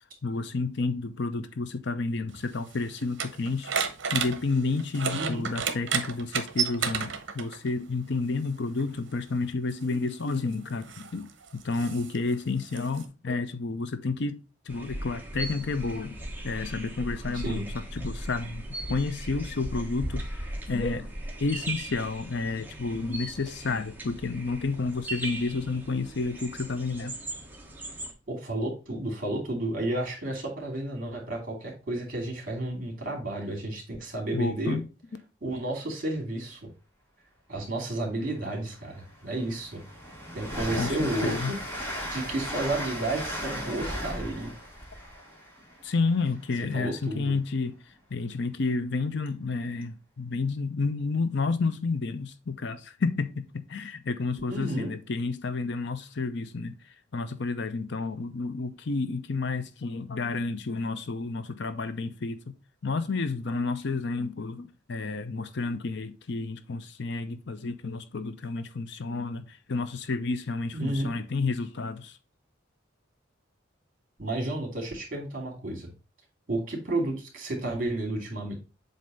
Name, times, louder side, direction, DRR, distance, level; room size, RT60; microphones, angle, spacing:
voice 1, 0.2-3.7 4.1-14.4 14.7-16.2 16.4-18.6 18.9-21.1 21.4-27.2 34.3-34.9 40.8-41.5 45.8-56.8 57.1-62.5 62.8-72.2, left 3 dB, 65° left, 0.6 m, -30 dB
sound 1, 2.3-7.7 8.8-8.9 9.7-13.1, right 7 dB, 65° right, 0.9 m, -32 dB
voice 2, 5.1-5.4 17.3-17.7 28.3-34.8 35.4-36.7 37.5-39.8 40.3-41.6 42.1-44.5 46.7-47.3 54.5-54.9 70.7-71.2 74.2-75.9 76.5-78.5, right 1 dB, 45° right, 2.6 m, -32 dB
sound 2, 14.7-28.1, right 1 dB, 10° right, 1.1 m, -38 dB
Train, 38.4-38.5 38.9-46.6, equal, 10° left, 1.8 m, -36 dB
7.6 x 2.8 x 5.3 m
head